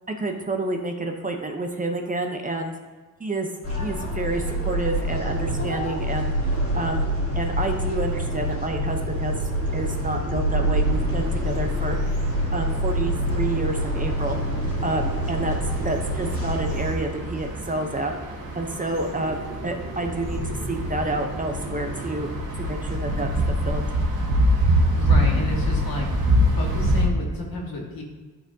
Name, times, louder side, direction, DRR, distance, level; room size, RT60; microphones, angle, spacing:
voice 1, 0.1-2.7 3.2-3.5 3.8-6.3 6.7-7.1 7.4-9.4 9.7-12.0 12.5-14.4 14.8-15.6 15.8-18.1 18.5-23.3 23.6-23.8, right 2 dB, 20° right, 3 dB, 0.7 m, -29 dB
sound 1, 3.6-16.9, equal, 40° left, 2.0 m, -26 dB
sound 2, 5.1-22.3, right 1 dB, 55° right, 1.7 m, -34 dB
sound 3, 10.8-27.1, equal, 80° right, 1.4 m, -26 dB
voice 2, 24.9-26.1 26.5-28.0, left 2 dB, 75° left, -2 dB, 2.0 m, -31 dB
12.0 x 4.4 x 2.7 m, 1.3 s
cardioid pair, 115°, 36 cm